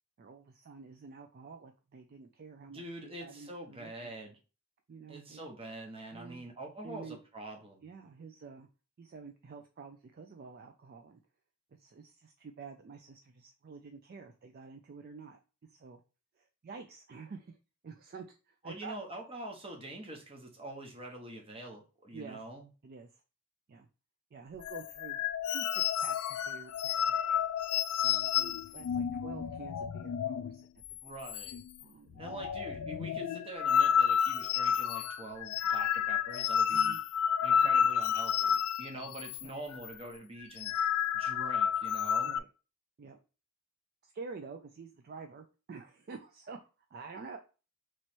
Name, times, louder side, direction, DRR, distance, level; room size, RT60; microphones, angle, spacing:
voice 1, 0.2-4.1 4.9-5.4 6.1-6.5 6.8-7.2 7.8-8.7 9.0-11.2 11.7-15.4 15.7-16.0 16.4-17.6 17.8-19.0 22.1-22.4 22.8-23.2 23.7-23.9 24.3-25.2 25.5-26.7 27.1-27.4 28.0-31.1 31.8-32.5 36.7-37.0 37.6-37.9 38.9-39.1 39.4-39.5 42.2-42.5 43.0-43.2 44.0-47.4, right 4 dB, 45° right, 5 dB, 0.4 m, -49 dB
voice 2, 2.7-4.4 5.1-7.8 18.6-22.7 31.0-31.6 32.2-37.0 37.4-40.7 41.1-42.3, right 1 dB, 25° right, 1 dB, 0.9 m, -45 dB
sound 1, 24.6-30.6 30.8-31.0 31.3-31.8 32.1-39.5 39.7-39.9 40.4-42.4, left 8 dB, 90° left, 0.3 m, -30 dB
3.1 x 3.0 x 4.3 m, 0.34 s
head